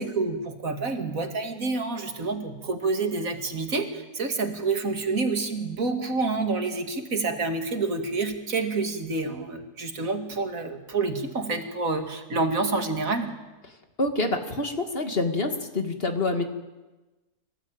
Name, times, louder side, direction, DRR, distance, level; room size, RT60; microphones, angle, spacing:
voice 1, 0.0-13.3, right 3 dB, 60° right, 5 dB, 2.7 m, -28 dB
voice 2, 14.0-16.4, left 2 dB, 40° left, 5 dB, 2.4 m, -26 dB
25.5 x 18.5 x 9.0 m, 1.1 s
omnidirectional pair, 1.7 m